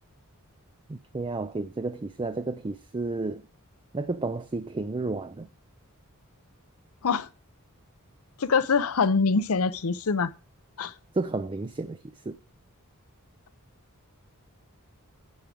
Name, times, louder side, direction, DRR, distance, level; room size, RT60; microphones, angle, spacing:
voice 1, 0.9-3.4 3.9-5.5 11.1-12.4, right 3 dB, 25° right, 0.4 m, -32 dB
voice 2, 8.4-10.3 10.8-10.9, left 5 dB, 75° left, 0.7 m, -24 dB
9.5 x 4.8 x 7.7 m
head